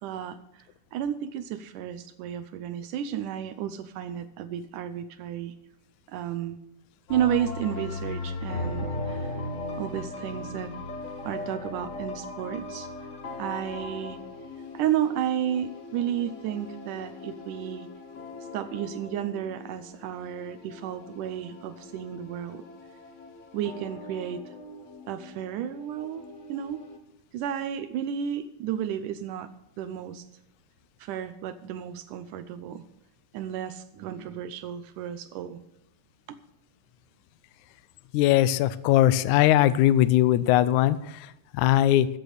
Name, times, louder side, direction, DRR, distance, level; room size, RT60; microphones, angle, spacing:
voice 1, 0.0-0.6 0.9-5.5 6.1-6.6 7.1-9.4 9.8-10.7 11.2-12.9 13.4-14.2 14.7-17.9 18.5-22.6 23.5-24.5 25.1-26.8 27.3-29.5 29.8-30.3 31.0-32.9 33.3-35.6, right 10 dB, 80° right, 12 dB, 2.2 m, -32 dB
sound 1, 7.1-27.0, left 2 dB, 55° left, 0.8 m, -39 dB
voice 2, 38.1-42.1, left 13 dB, 80° left, 16 dB, 1.9 m, -21 dB
14.0 x 8.0 x 6.6 m, 0.81 s
omnidirectional pair, 3.8 m